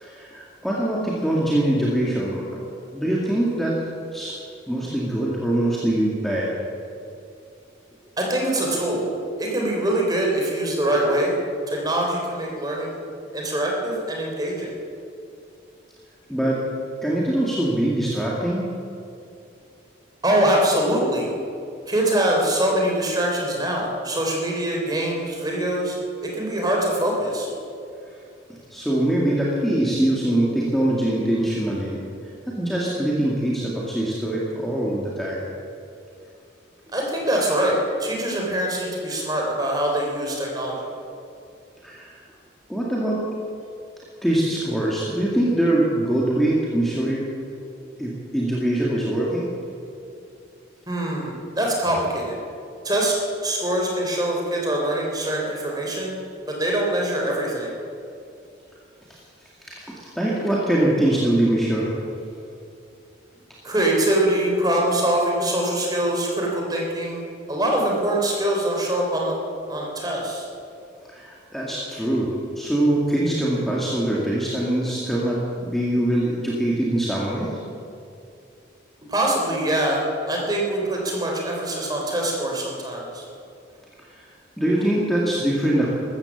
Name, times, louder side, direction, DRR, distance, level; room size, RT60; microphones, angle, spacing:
voice 1, 0.0-2.5 2.9-3.8 4.1-4.4 4.7-6.5 16.3-16.6 17.0-18.7 28.7-35.5 41.8-42.2 42.7-43.2 44.2-47.2 48.0-49.5 59.1-59.2 59.7-61.9 71.1-75.4 75.7-77.6 84.0-84.3 84.6-85.9, right 1 dB, ahead, -5 dB, 2.0 m, -23 dB
voice 2, 8.2-9.1 9.4-11.3 11.7-13.0 13.3-14.7 20.2-21.3 21.9-26.0 26.2-27.5 36.9-40.9 50.9-52.4 52.8-53.1 53.4-56.2 56.5-57.7 63.6-69.4 69.7-70.5 79.1-83.2, right 1 dB, 20° right, -1 dB, 3.4 m, -23 dB
15.0 x 13.5 x 7.2 m, 2.6 s
head